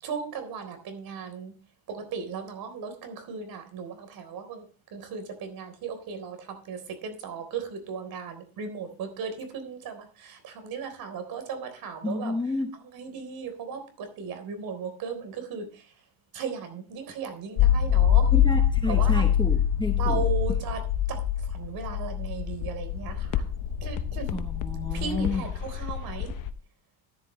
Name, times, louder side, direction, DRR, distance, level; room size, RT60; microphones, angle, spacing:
voice 1, 0.0-1.6 1.9-4.6 4.9-12.4 12.8-15.8 16.3-18.3 18.9-19.3 20.0-20.8 21.1-21.2 21.5-23.4 23.8-24.3 24.9-26.3, right 6 dB, 45° right, 8 dB, 3.8 m, -36 dB
voice 2, 12.0-12.7 18.3-20.2 24.3-25.5, left 3 dB, 10° left, 4 dB, 0.9 m, -30 dB
sound 1, 17.6-26.5, left 9 dB, 40° left, 0.9 m, -25 dB
14.0 x 10.5 x 3.1 m, 0.38 s
cardioid pair, 160°, 48 cm